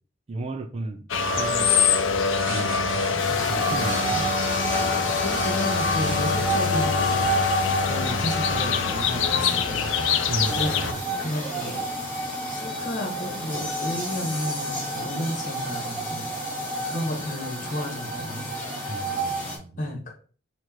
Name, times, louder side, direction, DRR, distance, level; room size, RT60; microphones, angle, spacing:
voice 1, 0.3-1.1 1.4-1.7 2.5-4.3 4.8-5.1 10.3-10.8 18.9-19.8, right 2 dB, 30° right, 0.3 m, -34 dB
sound 1, 1.1-10.9, left 5 dB, 65° left, 0.5 m, -24 dB
sound 2, 1.2-7.4, right 6 dB, 75° right, 0.6 m, -41 dB
sound 3, 3.2-19.6, right 1 dB, 10° left, 1.6 m, -30 dB
voice 2, 5.1-7.3 7.9-9.9 10.5-11.8 12.5-16.3 16.8-18.5 19.8-20.1, equal, 40° left, 1.4 m, -32 dB
4.7 x 2.5 x 4.4 m
head